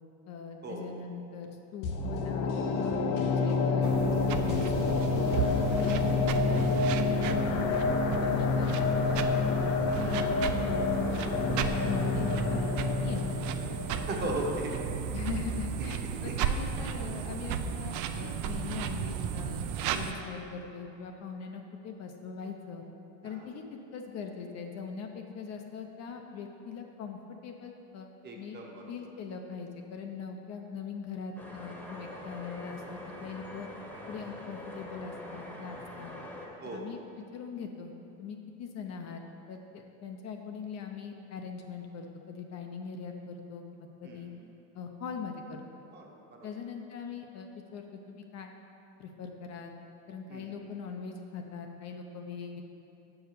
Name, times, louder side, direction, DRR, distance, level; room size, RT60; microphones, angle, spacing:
voice 1, 0.3-3.0 3.3-5.3 5.8-7.8 8.2-9.3 9.6-10.5 11.0-12.7 13.0-13.5 15.1-19.7 19.9-22.8 23.2-28.1 28.3-28.6 28.9-33.7 34.1-36.2 36.7-37.0 37.3-37.9 38.2-39.2 39.5-43.7 44.0-44.3 44.8-45.6 46.4-48.5 49.0-49.8 50.1-52.6, left 6 dB, 45° left, 3 dB, 0.6 m, -41 dB
sound 1, 1.8-14.9 15.2-15.3, left 4 dB, 85° left, 0.9 m, -28 dB
sound 2, 3.8-20.1, right 7 dB, 50° right, 0.4 m, -34 dB
voice 2, 14.1-15.1 16.3-16.4 19.6-20.0 23.2-23.5 28.2-28.9 36.6-36.9 44.0-44.3 45.9-46.5 50.3-50.6, right 2 dB, 25° right, 0 dB, 0.9 m, -38 dB
sound 3, 31.4-36.5, left 1 dB, 5° left, 0.9 m, -44 dB
6.3 x 4.7 x 6.7 m, 2.8 s
cardioid pair, 145°, 38 cm